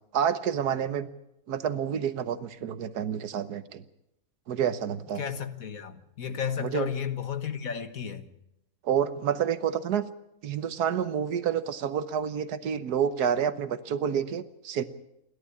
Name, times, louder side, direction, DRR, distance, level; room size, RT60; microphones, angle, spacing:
voice 1, 0.1-1.1 1.5-3.8 4.5-5.2 6.6-6.9 8.8-10.0 10.4-14.8, right 8 dB, 90° right, 1.6 m, -28 dB
voice 2, 5.2-8.3, left 8 dB, 65° left, 1.8 m, -33 dB
28.5 x 12.0 x 8.4 m
omnidirectional pair, 1.6 m